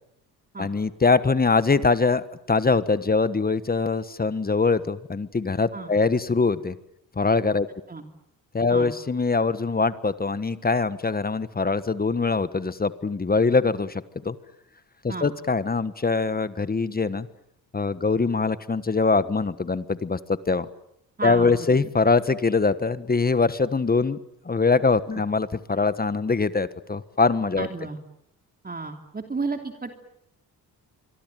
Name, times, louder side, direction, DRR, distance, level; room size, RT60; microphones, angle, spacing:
voice 1, 0.6-6.7 7.2-7.7 8.5-14.3 15.0-17.3 17.7-20.7 21.2-24.2 24.4-27.7, left 4 dB, 25° left, 14 dB, 1.3 m, -23 dB
voice 2, 21.2-21.8 27.6-28.0 28.6-29.9, right 3 dB, 25° right, 5 dB, 3.0 m, -32 dB
26.0 x 23.5 x 9.2 m, 0.77 s
cardioid pair, 90°, 37 cm